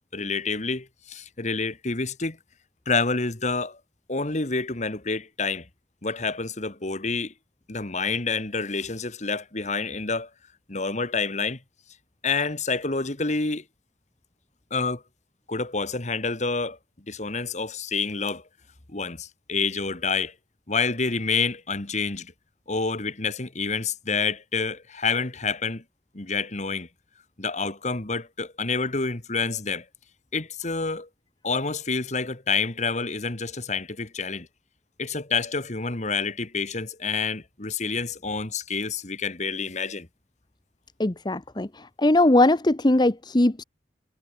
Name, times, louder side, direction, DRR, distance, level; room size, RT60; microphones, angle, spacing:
voice 1, 0.1-2.4 2.9-3.8 4.1-5.7 6.0-7.3 7.7-10.3 10.7-11.6 12.2-13.6 14.7-15.0 15.5-16.8 17.1-18.4 18.9-20.3 20.7-22.3 22.7-25.8 26.1-26.9 27.4-29.9 30.3-31.1 31.4-34.5 35.0-40.1, left 4 dB, 40° left, 1.9 m, -28 dB
voice 2, 41.0-43.6, left 1 dB, 25° left, 0.9 m, -20 dB
head